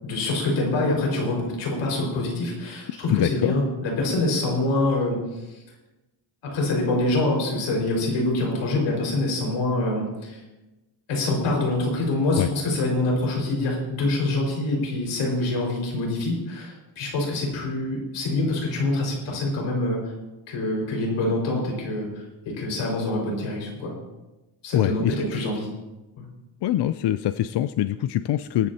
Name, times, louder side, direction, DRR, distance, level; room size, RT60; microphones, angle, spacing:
voice 1, 0.0-5.6 6.5-10.4 11.1-20.1 20.5-23.9 24.6-25.7 26.2-26.3, left 2 dB, 90° left, -1 dB, 5.3 m, -25 dB
voice 2, 3.1-3.5 12.4-12.5 24.7-25.2 26.6-28.7, left 12 dB, 55° left, 12 dB, 0.5 m, -23 dB
22.0 x 10.5 x 2.9 m, 1.1 s
cardioid pair, 115°, 47 cm